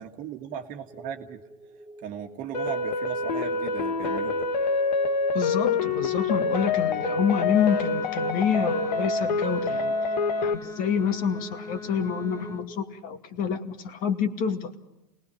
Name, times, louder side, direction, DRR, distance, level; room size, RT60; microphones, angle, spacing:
voice 1, 0.0-1.4 2.0-4.5, right 8 dB, 40° right, 4 dB, 1.7 m, -37 dB
sound 1, 0.9-12.9, right 2 dB, 20° right, 2.8 m, -45 dB
sound 2, 2.5-10.5, left 3 dB, 85° left, 2.0 m, -26 dB
voice 2, 5.3-9.9 10.4-14.7, left 7 dB, 40° left, 8 dB, 2.2 m, -27 dB
Wind instrument woodwind instrument, 7.5-12.7, left 5 dB, 15° left, 1.5 m, -42 dB
29.0 x 20.0 x 5.7 m, 0.95 s
hypercardioid pair, 110°, 21 cm